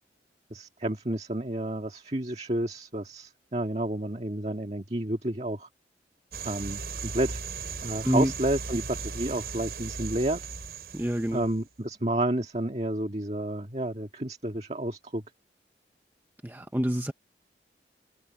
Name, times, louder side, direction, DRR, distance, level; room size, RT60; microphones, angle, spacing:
voice 1, 0.5-5.7 6.4-7.4 7.8-10.5 11.3-15.2, right 1 dB, 35° right, 1.8 m, -30 dB
sound 1, 6.3-11.6, right 4 dB, 60° right, 7.9 m, -37 dB
voice 2, 10.9-11.4 16.4-17.1, equal, 10° right, 0.7 m, -27 dB
head